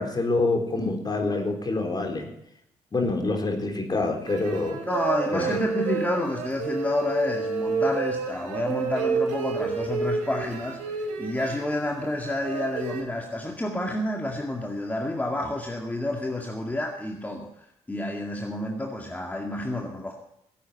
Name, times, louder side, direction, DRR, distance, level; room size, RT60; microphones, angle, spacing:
voice 1, 0.0-2.3 2.9-4.8 5.3-5.6, left 2 dB, 35° left, 3 dB, 3.9 m, -26 dB
sound 1, 4.3-13.0, right 5 dB, 85° right, 2.3 m, -30 dB
voice 2, 4.9-20.1, left 1 dB, 15° left, 0 dB, 2.1 m, -29 dB
16.0 x 8.5 x 8.5 m, 0.78 s
supercardioid pair, 70°, 12 cm